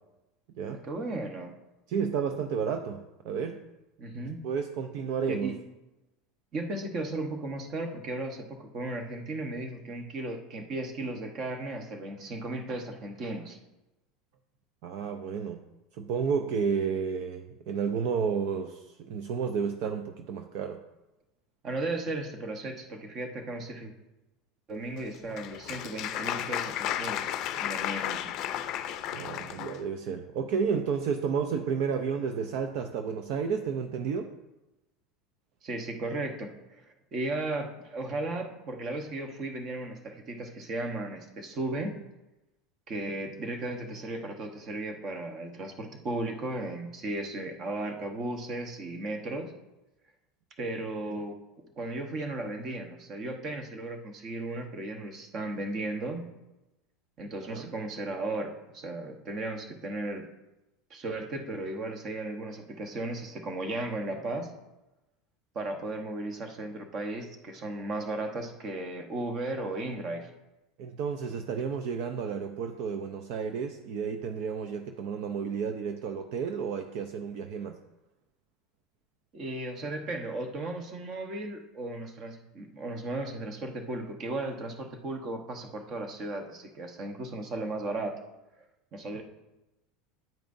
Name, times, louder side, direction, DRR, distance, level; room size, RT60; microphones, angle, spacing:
voice 1, 0.8-1.6 4.0-4.4 5.3-5.5 6.5-13.6 21.6-23.9 24.7-27.3 27.6-28.3 35.6-36.8 37.1-41.9 42.9-49.5 50.6-51.4 51.8-56.3 57.2-60.3 60.9-64.5 65.5-70.3 79.3-88.2 88.9-89.2, right 2 dB, 30° right, 5 dB, 1.0 m, -35 dB
voice 2, 1.9-3.6 4.4-5.5 14.8-15.6 15.9-20.8 29.1-34.3 51.1-51.2 57.4-57.7 70.8-77.8, right 6 dB, 55° right, 6 dB, 0.5 m, -31 dB
Applause, 25.0-29.8, left 11 dB, 45° left, 0.5 m, -33 dB
9.1 x 9.0 x 2.6 m, 0.99 s
supercardioid pair, 155°, 0 cm